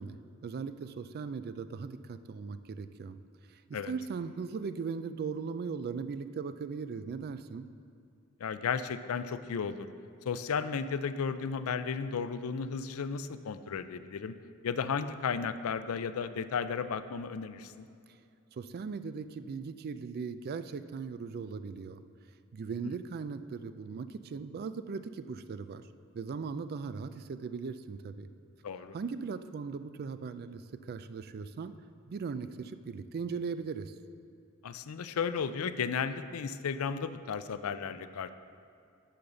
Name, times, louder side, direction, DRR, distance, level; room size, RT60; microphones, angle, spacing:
voice 1, 0.0-3.2 3.5-7.7 18.1-18.2 18.5-22.0 22.5-25.8 26.1-28.3 28.9-31.7 32.1-33.9, right 5 dB, 45° right, 12 dB, 0.3 m, -38 dB
voice 2, 8.4-9.9 10.3-14.3 14.6-17.9 28.6-29.0 34.6-38.3, left 6 dB, 75° left, 12 dB, 0.4 m, -34 dB
10.0 x 4.0 x 6.8 m, 2.4 s
head